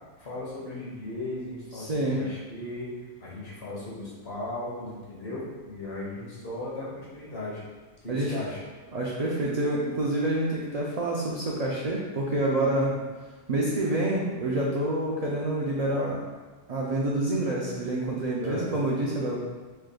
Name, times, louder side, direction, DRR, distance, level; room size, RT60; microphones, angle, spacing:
voice 1, 0.2-7.6 8.0-8.6 12.7-13.1 18.4-18.7, left 1 dB, 55° left, -6 dB, 1.4 m, -37 dB
voice 2, 1.8-2.2 8.1-8.3 8.9-12.9 13.5-16.2 16.7-19.4, right 1 dB, 60° right, -4 dB, 0.4 m, -27 dB
4.8 x 3.2 x 2.2 m, 1.3 s
omnidirectional pair, 1.2 m